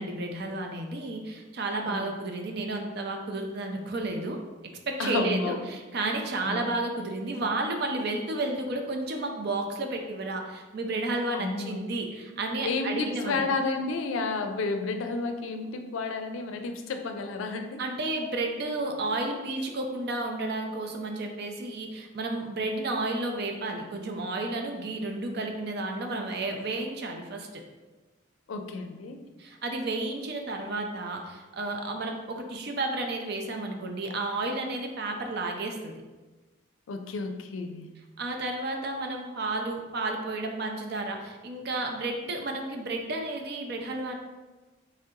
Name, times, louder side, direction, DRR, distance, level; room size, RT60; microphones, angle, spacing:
voice 1, 0.0-4.4 4.9-13.4 17.8-27.6 29.4-36.0 38.2-44.1, right 2 dB, 55° right, 3 dB, 0.5 m, -32 dB
voice 2, 5.0-5.7 6.4-6.7 11.3-11.8 12.6-17.8 28.5-29.2 36.9-37.9, left 3 dB, 85° left, 6 dB, 0.4 m, -31 dB
3.2 x 2.7 x 3.7 m, 1.2 s
head